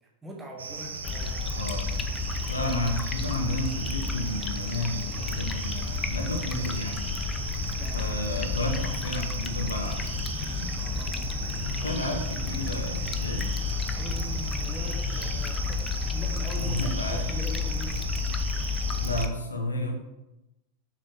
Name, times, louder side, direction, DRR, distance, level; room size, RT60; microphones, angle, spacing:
voice 1, 0.2-1.6 7.8-8.1 10.7-12.3 14.0-18.0, equal, 10° right, -2 dB, 1.3 m, -42 dB
sound 1, 0.6-19.3, right 5 dB, 70° right, 0.6 m, -38 dB
sound 2, 0.7-16.4, left 6 dB, 45° left, 1.0 m, -46 dB
sound 3, 1.0-19.3, left 5 dB, 20° left, 0.5 m, -31 dB
voice 2, 2.5-7.0 7.9-10.2 10.6-10.7 11.8-13.5 16.6-17.2 19.0-19.9, left 1 dB, 75° left, 3 dB, 1.1 m, -32 dB
7.0 x 5.2 x 3.6 m, 0.94 s
figure-of-eight pair, 90°, 0 cm